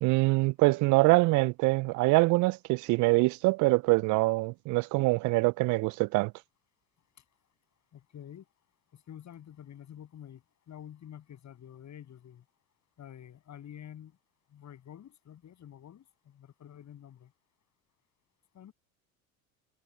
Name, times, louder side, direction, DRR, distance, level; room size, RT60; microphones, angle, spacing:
voice 1, 0.0-6.3, right 24 dB, 45° right, 0.6 m, -24 dB
voice 2, 7.9-8.5 8.9-12.4 13.0-14.2 14.5-17.3 18.5-18.7, left 10 dB, 40° left, 7.8 m, -49 dB
hypercardioid pair, 70°, 42 cm